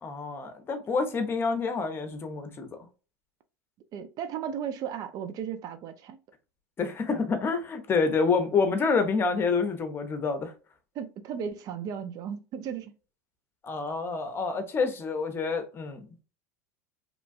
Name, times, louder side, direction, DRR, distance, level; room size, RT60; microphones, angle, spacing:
voice 1, 0.0-2.7 6.8-10.5 13.6-16.2, left 4 dB, 30° left, 0.7 m, -28 dB
voice 2, 3.9-6.2 10.9-12.9, right 8 dB, 50° right, 0.5 m, -35 dB
3.0 x 2.2 x 2.5 m
supercardioid pair, 100°, 8 cm